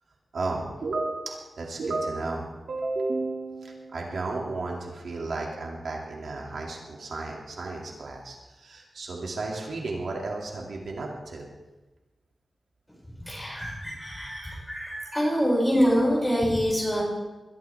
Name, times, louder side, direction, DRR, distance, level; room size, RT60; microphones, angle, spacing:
voice 1, 0.3-11.5, right 3 dB, 75° right, -1 dB, 2.4 m, -33 dB
voice 2, 13.2-17.0, equal, 10° left, -5 dB, 6.3 m, -25 dB
21.5 x 12.0 x 3.5 m, 1.2 s
wide cardioid pair, 175°, 0 cm